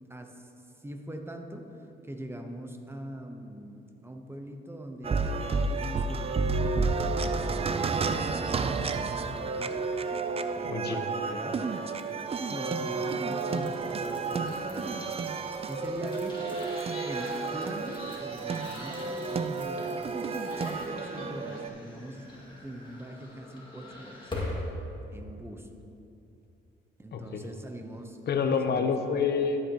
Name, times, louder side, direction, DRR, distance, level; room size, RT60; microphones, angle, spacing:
voice 1, 0.1-0.5 0.8-9.9 10.6-11.6 12.3-16.4 17.0-22.3 22.6-24.3 25.1-25.7 27.0-28.2 28.7-28.9, right 1 dB, 10° right, 4 dB, 0.8 m, -43 dB
sound 1, 5.0-21.7, right 4 dB, 30° right, 0.4 m, -31 dB
voice 2, 10.6-11.0 27.1-27.5 28.3-29.6, left 5 dB, 55° left, 6 dB, 0.9 m, -28 dB
sound 2, 11.1-24.7, left 2 dB, 25° left, 2.1 m, -44 dB
12.0 x 8.4 x 3.0 m, 2.7 s
cardioid pair, 90°, 20 cm